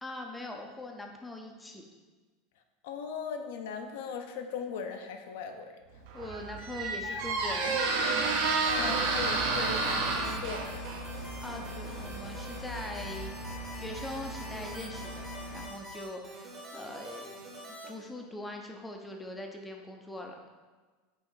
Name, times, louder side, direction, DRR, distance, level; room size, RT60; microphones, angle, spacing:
voice 1, 0.0-1.8 6.1-7.8 11.4-13.4 13.8-15.2 15.5-17.3 17.7-20.4, left 1 dB, 5° left, 2 dB, 0.4 m, -42 dB
voice 2, 2.8-5.8 8.6-11.1, left 6 dB, 75° left, 5 dB, 0.4 m, -39 dB
Squeak, 6.0-14.7, right 3 dB, 70° right, 0.6 m, -32 dB
sound 1, 8.2-17.9, right 1 dB, 20° right, 0.8 m, -46 dB
sound 2, 8.7-15.7, left 1 dB, 45° left, 0.8 m, -42 dB
5.1 x 2.5 x 3.8 m, 1.3 s
supercardioid pair, 150°, 0 cm